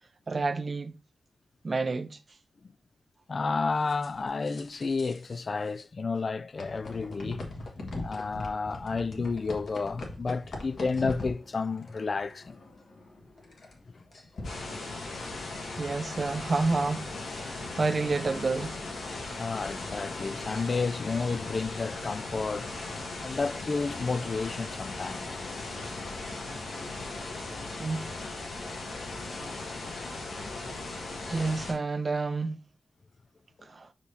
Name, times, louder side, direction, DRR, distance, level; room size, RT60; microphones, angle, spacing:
voice 1, 0.3-0.9 1.6-2.2 15.8-17.1 17.4-18.8 27.8-28.0 31.3-32.6 33.6-33.9, right 3 dB, 40° right, 0.5 m, -29 dB
voice 2, 3.3-7.4 8.0-12.6 13.9-14.0 19.4-22.7 23.2-25.5, left 4 dB, 45° left, 0.3 m, -31 dB
sound 1, 3.9-5.4 5.7-5.8 6.6-15.9, left 2 dB, 65° left, 1.6 m, -42 dB
sound 2, 14.4-31.7, left 2 dB, 85° left, 1.8 m, -38 dB
5.4 x 4.9 x 4.2 m
wide cardioid pair, 100°, 0 cm